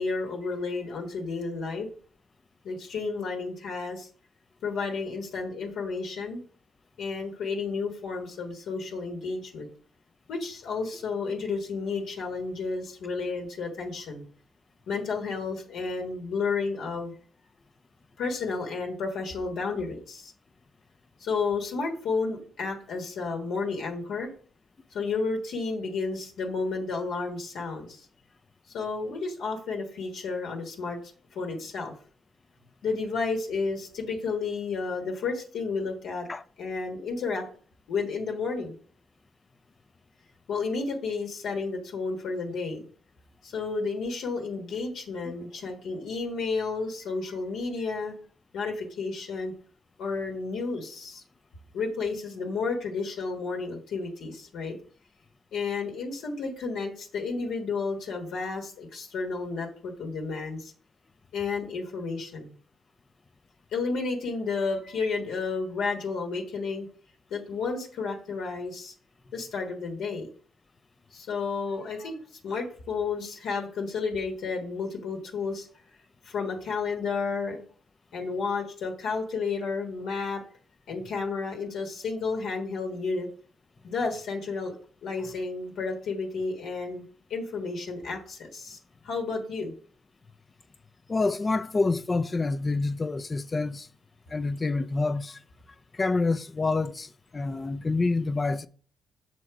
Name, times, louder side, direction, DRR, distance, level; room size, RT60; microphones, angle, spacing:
voice 1, 0.0-1.9 2.6-4.1 4.6-6.4 7.0-9.7 10.3-14.2 14.9-17.1 18.2-20.3 21.2-24.3 24.9-28.0 28.7-31.0 31.3-31.9 32.8-36.3 36.6-37.5 37.9-38.8 40.5-42.8 43.4-48.1 48.5-49.5 50.0-51.2 51.7-54.8 55.5-60.7 61.3-62.5 63.7-66.9 67.3-68.9 69.3-70.3 71.1-75.7 76.2-77.6 78.1-80.4 80.9-83.3 83.8-84.7 85.0-87.0 87.3-88.8 89.0-89.7, left 4 dB, 75° left, 1.4 m, -31 dB
voice 2, 91.1-93.9 94.3-95.4 95.9-98.7, left 3 dB, 30° left, 0.4 m, -27 dB
6.3 x 4.1 x 4.6 m
cardioid pair, 90°, 0 cm